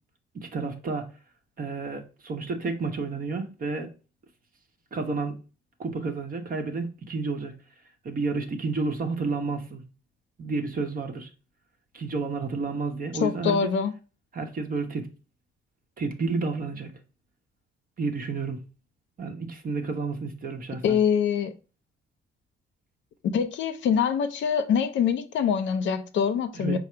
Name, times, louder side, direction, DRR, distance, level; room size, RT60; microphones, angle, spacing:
voice 1, 0.3-1.1 1.6-3.9 4.9-5.4 5.8-7.5 8.0-9.8 10.4-11.3 11.9-13.7 14.3-15.1 16.0-16.9 18.0-18.6 19.2-21.0 26.5-26.8, right 4 dB, 45° right, 0.9 m, -30 dB
voice 2, 13.2-13.9 20.8-21.5 23.2-26.8, left 7 dB, 70° left, 0.5 m, -24 dB
4.8 x 2.0 x 4.3 m
cardioid pair, 90°, 20 cm